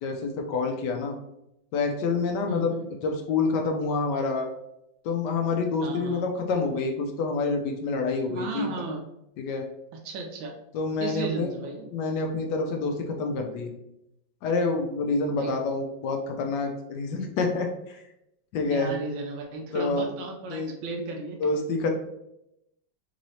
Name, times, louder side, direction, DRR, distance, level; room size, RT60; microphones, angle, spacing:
voice 1, 0.0-1.2 1.7-2.8 3.0-4.5 5.0-8.8 9.4-9.7 10.7-11.5 11.9-13.7 14.4-18.0 18.5-18.9 19.7-20.1 20.5-20.7 21.4-21.9, left 4 dB, 75° left, 3 dB, 1.1 m, -27 dB
voice 2, 5.8-6.3 8.3-9.0 9.9-10.5 11.0-11.9 15.4-15.5 18.7-21.4, right 3 dB, 80° right, 2 dB, 1.3 m, -35 dB
3.7 x 3.1 x 2.7 m, 0.84 s
omnidirectional pair, 2.1 m